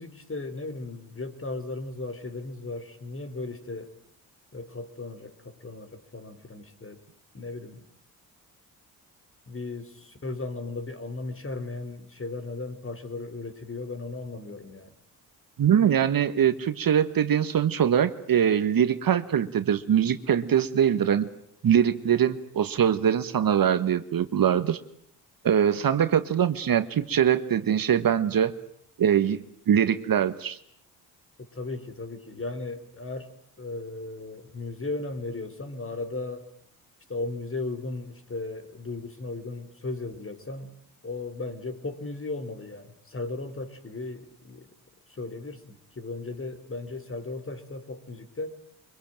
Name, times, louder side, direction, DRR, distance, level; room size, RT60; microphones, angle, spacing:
voice 1, 0.0-3.9 4.5-7.0 7.3-7.8 9.5-15.0 31.4-33.3 33.6-36.5 37.1-40.7 41.0-44.7 45.1-48.6, left 3 dB, 30° left, 12 dB, 4.1 m, -36 dB
voice 2, 15.6-21.3 21.6-24.8 25.4-28.5 29.0-30.6, right 9 dB, 50° right, 12 dB, 1.6 m, -23 dB
25.0 x 23.0 x 9.0 m, 0.67 s
hypercardioid pair, 55°, 44 cm